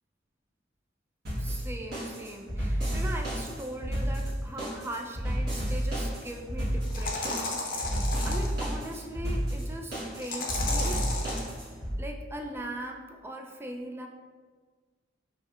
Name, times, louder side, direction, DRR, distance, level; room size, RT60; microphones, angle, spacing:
sound 1, 1.2-11.9, equal, 60° right, 1.4 m, -31 dB
voice 1, 1.4-11.0 12.0-14.1, right 1 dB, 15° right, 2 dB, 0.3 m, -40 dB
sound 2, 5.6-5.7 6.9-8.5 10.2-11.5, left 3 dB, 50° left, 0.6 m, -33 dB
5.4 x 2.7 x 2.3 m, 1.4 s
head